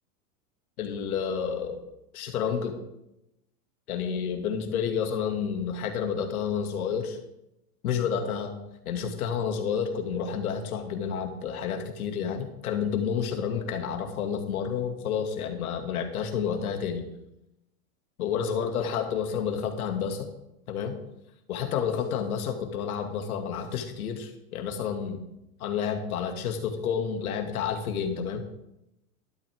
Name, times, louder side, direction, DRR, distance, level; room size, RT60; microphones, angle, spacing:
voice 1, 0.8-1.8 2.1-2.8 3.9-7.2 7.8-8.5 8.9-17.1 18.2-20.3 20.7-21.0 21.5-25.3 25.6-28.4, left 7 dB, 80° left, 5 dB, 2.3 m, -30 dB
13.0 x 11.5 x 3.6 m, 0.87 s
supercardioid pair, 140°, 43 cm